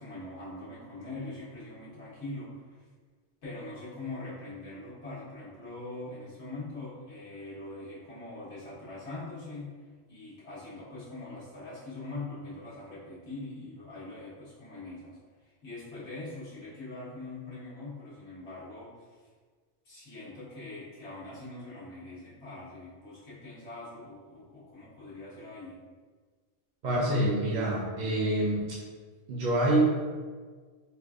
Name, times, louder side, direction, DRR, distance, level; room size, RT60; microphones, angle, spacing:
voice 1, 0.0-2.8 3.4-9.7 10.1-15.2 15.4-19.2 19.8-25.8, left 2 dB, 70° left, -9 dB, 1.5 m, -42 dB
voice 2, 26.8-28.7 29.3-29.8, right 1 dB, 50° right, -6 dB, 0.6 m, -26 dB
4.3 x 2.5 x 2.3 m, 1.5 s
omnidirectional pair, 1.2 m